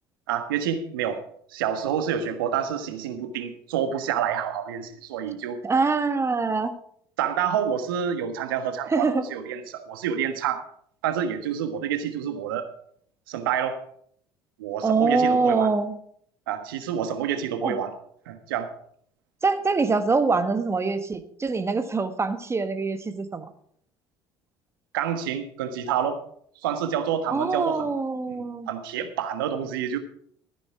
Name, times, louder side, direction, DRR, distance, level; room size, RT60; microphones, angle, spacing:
voice 1, 0.3-1.2 1.5-5.6 7.2-10.6 11.0-12.7 13.3-13.8 14.6-15.7 16.5-17.9 18.3-18.7 24.9-26.2 26.6-27.9 28.7-30.0, right 8 dB, 75° right, 9 dB, 1.4 m, -28 dB
voice 2, 5.6-6.7 8.9-9.2 14.8-16.0 17.6-17.8 19.4-23.5 27.3-28.7, right 4 dB, 25° right, 9 dB, 1.5 m, -24 dB
14.0 x 10.0 x 4.8 m, 0.64 s
hypercardioid pair, 60°, 12 cm